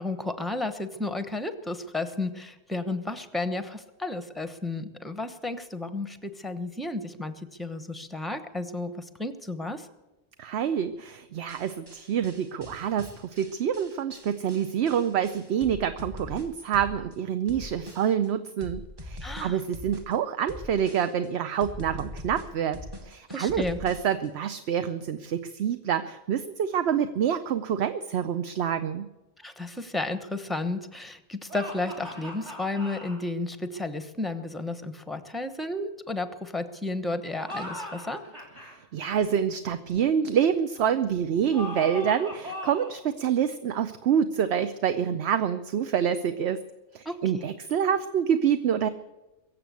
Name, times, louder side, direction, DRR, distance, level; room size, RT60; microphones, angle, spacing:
voice 1, 0.0-9.9 19.2-19.6 23.3-23.8 29.4-38.2 47.0-47.4, left 2 dB, ahead, 10 dB, 0.9 m, -32 dB
voice 2, 10.4-29.1 38.9-46.6 46.9-48.9, right 8 dB, 65° right, 10 dB, 0.9 m, -27 dB
sound 1, 11.5-17.1 17.5-18.3 18.6-20.1 20.5-21.3 21.6-24.3, left 1 dB, 20° right, 1.2 m, -42 dB
sound 2, 31.5-33.2 37.3-38.7 41.5-43.0, left 1 dB, 40° right, 3.9 m, -39 dB
22.5 x 7.7 x 8.2 m, 1.0 s
omnidirectional pair, 1.2 m